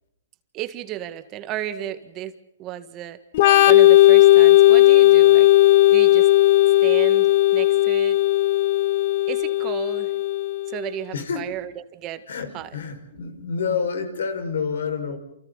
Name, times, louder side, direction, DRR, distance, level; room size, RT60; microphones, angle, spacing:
voice 1, 0.5-3.2 3.7-5.5 5.9-6.3 6.8-8.2 9.3-10.1 10.7-12.2 12.5-12.7, right 12 dB, 25° right, 10 dB, 1.8 m, -33 dB
Organ, 3.3-10.8, left 16 dB, 45° left, 1.3 m, -15 dB
voice 2, 11.1-11.6 12.3-15.2, left 5 dB, 75° left, 8 dB, 5.7 m, -28 dB
29.5 x 29.0 x 4.1 m, 0.82 s
hypercardioid pair, 150°, 0 cm